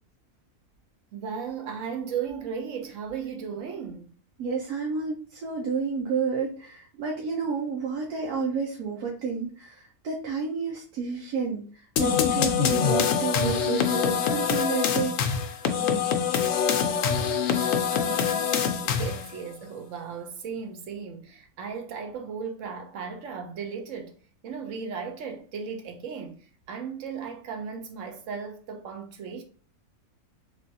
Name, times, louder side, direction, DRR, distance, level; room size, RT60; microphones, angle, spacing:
voice 1, 1.1-4.1 17.9-24.1 24.4-29.4, right 6 dB, 65° right, 0.9 m, -36 dB
voice 2, 4.4-11.7 12.0-15.4 15.8-16.3, right 5 dB, 90° right, 1.2 m, -30 dB
sound 1, 12.0-19.3, left 7 dB, 70° left, 0.9 m, -24 dB
3.4 x 3.0 x 2.7 m
omnidirectional pair, 1.6 m